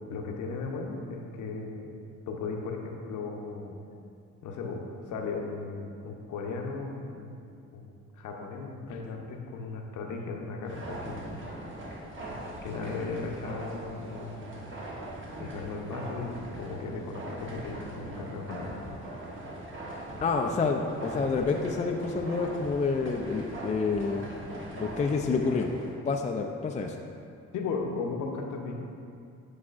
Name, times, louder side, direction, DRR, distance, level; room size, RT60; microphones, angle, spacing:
voice 1, 0.1-1.9 2.3-3.8 4.4-7.4 7.7-11.4 12.6-14.7 15.4-19.0 27.5-28.7, left 4 dB, 80° left, 2 dB, 0.8 m, -36 dB
sound 1, 10.6-25.9, right 1 dB, 40° right, 1.1 m, -41 dB
voice 2, 20.2-24.3 24.8-25.7 26.0-27.0, left 4 dB, 25° left, 3 dB, 0.3 m, -28 dB
8.4 x 4.8 x 2.5 m, 2.5 s
cardioid pair, 90°, 30 cm